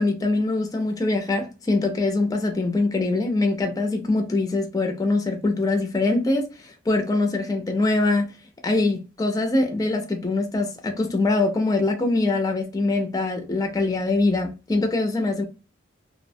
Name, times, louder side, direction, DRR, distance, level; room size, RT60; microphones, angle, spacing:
voice 1, 0.0-8.3 8.6-15.4, left 2 dB, 20° left, 0.4 m, -23 dB
2.5 x 2.0 x 2.6 m
head